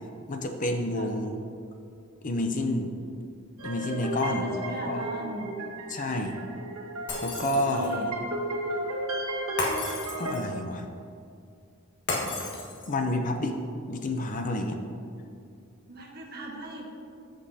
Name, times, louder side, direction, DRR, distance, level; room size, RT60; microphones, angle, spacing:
voice 1, 0.3-1.4 2.2-2.9 3.6-5.1 5.9-6.4 7.2-7.9 10.1-10.9 12.2-12.3 12.9-13.6 13.9-14.8, left 1 dB, 40° left, 5 dB, 0.6 m, -29 dB
sound 1, 3.6-10.4, right 1 dB, 85° right, 1.2 m, -34 dB
voice 2, 4.3-5.5 7.4-8.1 15.9-16.8, right 1 dB, 50° right, -1 dB, 1.3 m, -38 dB
Shatter, 7.1-8.0 9.6-10.6 12.1-13.1, left 2 dB, 55° left, 1.5 m, -33 dB
14.5 x 5.3 x 2.8 m, 2.4 s
head